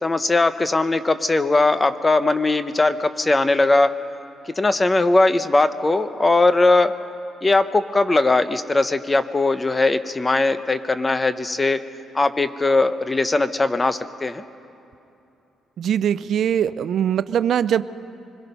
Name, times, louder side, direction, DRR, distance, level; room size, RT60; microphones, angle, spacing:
voice 1, 0.0-3.9 4.6-6.9 7.4-11.8 12.1-14.4, left 2 dB, 20° left, 11 dB, 0.8 m, -19 dB
voice 2, 15.8-17.8, right 9 dB, 65° right, 15 dB, 0.4 m, -21 dB
24.5 x 21.0 x 5.5 m, 2.8 s
cardioid pair, 90°, 0 cm